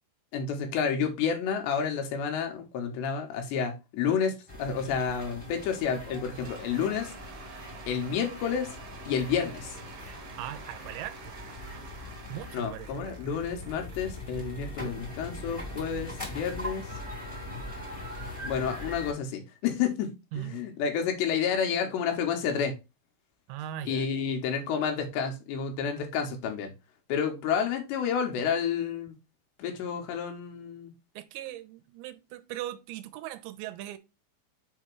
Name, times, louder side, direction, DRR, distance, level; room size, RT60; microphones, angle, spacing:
voice 1, 0.3-7.1 7.9-8.7 9.1-9.7 12.5-16.9 18.4-22.7 23.9-26.7 27.1-29.1 29.6-30.9, left 7 dB, 75° left, 3.2 m, -30 dB
sound 1, 4.5-19.1, left 1 dB, 10° left, 1.6 m, -41 dB
Cheering / Applause / Crowd, 5.9-14.5, right 7 dB, 70° right, 2.8 m, -49 dB
voice 2, 10.4-11.3 12.3-13.0 20.3-20.6 23.5-24.1 31.2-34.0, right 13 dB, 85° right, 2.8 m, -39 dB
7.0 x 2.9 x 4.5 m
omnidirectional pair, 5.2 m